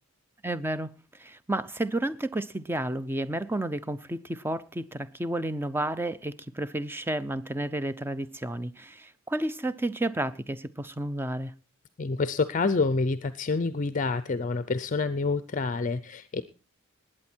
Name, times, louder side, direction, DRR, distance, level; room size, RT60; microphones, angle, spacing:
voice 1, 0.4-11.5, right 1 dB, 10° right, 0.6 m, -31 dB
voice 2, 12.0-16.4, left 3 dB, 35° left, 0.5 m, -27 dB
19.5 x 8.8 x 4.4 m
head